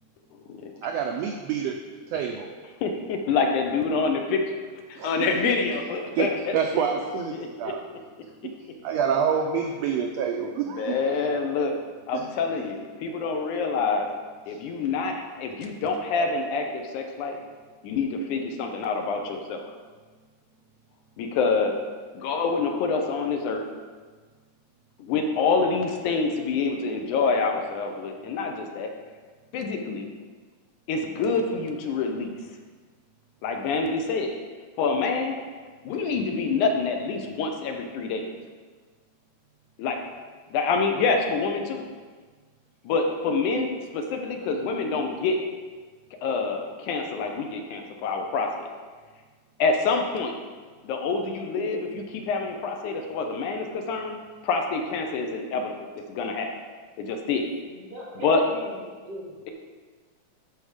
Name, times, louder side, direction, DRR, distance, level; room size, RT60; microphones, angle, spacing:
voice 1, 0.8-1.8 2.1-2.5 5.0-5.5 6.1-6.3 6.5-7.8 8.8-11.0 12.1-12.2 14.5-14.6, right 7 dB, 80° right, 3 dB, 1.5 m, -27 dB
voice 2, 2.8-4.4 4.9-6.8 7.3-7.5 10.8-11.7 12.1-14.1 14.5-17.4 17.8-19.6 21.2-21.7 22.2-23.6 25.0-28.9 29.5-30.1 30.9-32.3 33.4-34.4 34.8-35.4 35.8-38.3 39.8-40.0 40.5-41.8 42.8-45.4 46.2-48.7 49.6-50.3 50.8-54.2 54.4-56.5 57.0-57.5 58.2-58.4, left 4 dB, 80° left, 3 dB, 2.3 m, -26 dB
voice 3, 57.7-59.3, right 1 dB, 55° right, -4 dB, 2.6 m, -39 dB
11.5 x 5.0 x 5.0 m, 1.5 s
omnidirectional pair, 3.6 m